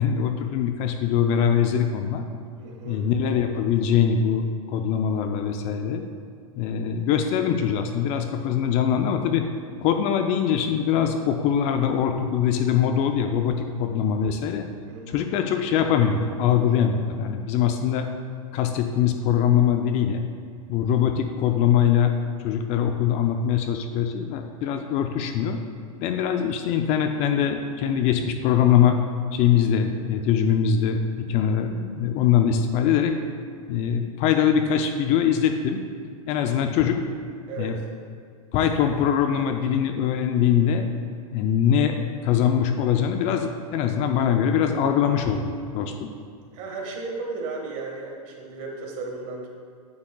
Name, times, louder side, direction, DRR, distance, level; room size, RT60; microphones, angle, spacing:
voice 1, 0.0-2.2 2.9-6.0 6.6-9.5 9.8-14.6 15.1-18.1 18.5-20.2 20.7-22.1 22.4-25.6 26.0-29.0 29.3-33.1 33.7-35.8 36.3-37.0 37.6-37.7 38.5-40.9 41.3-46.1, left 8 dB, 35° left, 6 dB, 0.4 m, -22 dB
voice 2, 2.6-3.1 14.8-15.3 37.5-37.8 46.5-49.5, right 3 dB, 40° right, 0 dB, 1.5 m, -35 dB
8.7 x 7.7 x 2.3 m, 2.2 s
hypercardioid pair, 120°, 19 cm